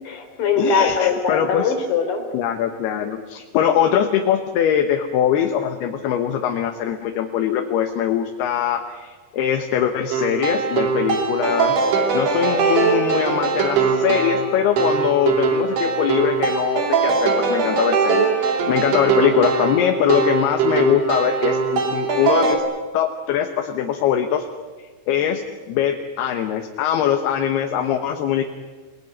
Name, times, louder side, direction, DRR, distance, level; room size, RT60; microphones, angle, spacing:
voice 1, 0.0-2.2, left 5 dB, 50° left, 5 dB, 4.5 m, -21 dB
voice 2, 0.6-1.7 2.3-11.9 12.1-22.6 22.9-24.5 25.1-25.4 25.7-28.4, left 9 dB, 70° left, 5 dB, 3.0 m, -22 dB
sound 1, 10.1-22.6, right 5 dB, 80° right, 5.4 m, -21 dB
29.0 x 19.5 x 9.5 m, 1.4 s
omnidirectional pair, 5.2 m